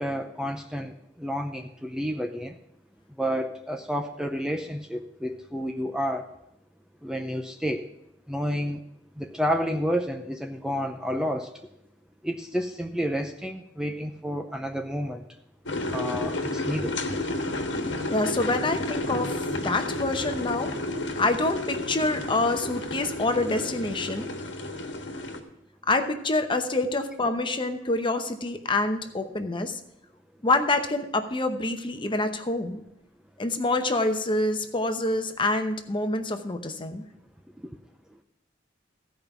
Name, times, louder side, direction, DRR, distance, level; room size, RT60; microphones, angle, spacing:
voice 1, 0.0-2.5 3.2-6.3 7.0-7.8 8.3-8.8 9.2-11.5 12.2-15.2 15.9-17.0, equal, 5° right, 4 dB, 0.5 m, -30 dB
sound 1, 15.7-25.4, left 2 dB, 70° left, 1.4 m, -31 dB
voice 2, 18.1-20.7 21.2-24.3 25.9-29.8 30.4-32.8 33.4-37.0, left 2 dB, 25° left, 7 dB, 0.9 m, -26 dB
15.0 x 5.2 x 6.0 m, 0.80 s
head